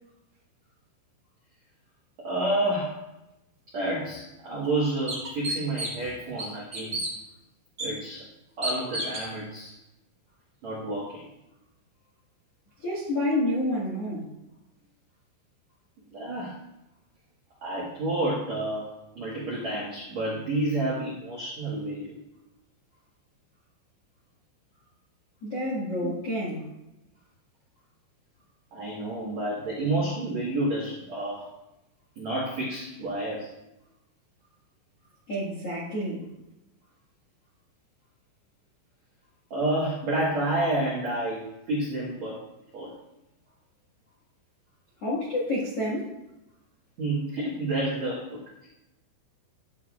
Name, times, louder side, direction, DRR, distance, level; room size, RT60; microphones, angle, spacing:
voice 1, 2.2-3.0 3.7-7.0 7.8-8.2 8.6-9.7 10.6-11.2 16.1-16.5 17.6-18.9 19.1-22.1 26.0-26.1 28.7-31.5 32.1-33.5 39.5-42.4 42.7-42.9 47.0-48.7, right 1 dB, 75° right, -6 dB, 1.5 m, -29 dB
sound 1, 4.0-4.1 4.6-4.7 5.1-6.1 6.4-7.1 7.8-7.9 8.6-9.3, right 1 dB, 35° right, 1.7 m, -31 dB
voice 2, 12.8-14.3 25.4-26.7 35.3-36.3 45.0-46.2, left 1 dB, 65° left, -5 dB, 1.5 m, -29 dB
13.0 x 8.0 x 2.4 m, 0.93 s
omnidirectional pair, 5.7 m